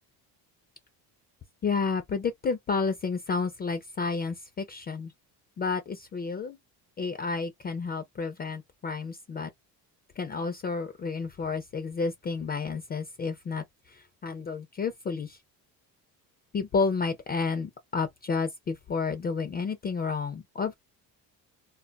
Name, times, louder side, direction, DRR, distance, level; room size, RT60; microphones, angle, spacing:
voice 1, 1.6-5.1 5.6-6.6 7.0-9.5 10.2-15.4 16.5-20.7, left 4 dB, 25° left, 0.4 m, -31 dB
2.2 x 2.2 x 3.8 m
cardioid pair, 145°, 40 cm